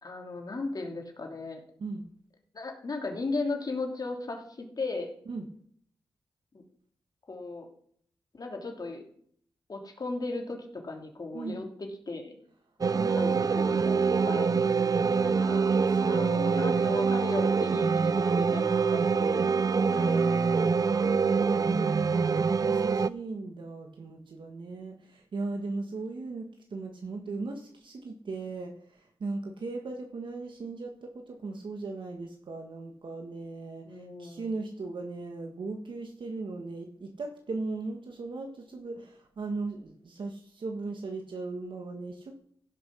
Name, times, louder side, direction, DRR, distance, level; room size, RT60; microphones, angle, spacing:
voice 1, 0.0-1.6 2.5-5.1 6.5-6.6 7.3-7.7 8.3-9.0 9.7-10.6 10.8-12.4 12.8-14.6 15.2-15.6 16.1-19.5 20.0-20.2 21.0-21.8 33.8-34.5, left 3 dB, 45° left, 2 dB, 3.0 m, -37 dB
sound 1, 12.8-23.1, right 5 dB, 40° right, 0.4 m, -25 dB
voice 2, 12.9-14.5 15.0-17.8 19.4-20.8 21.5-42.3, right 3 dB, 65° right, 3 dB, 1.6 m, -38 dB
15.5 x 6.2 x 6.3 m, 0.62 s
cardioid pair, 75°, 9 cm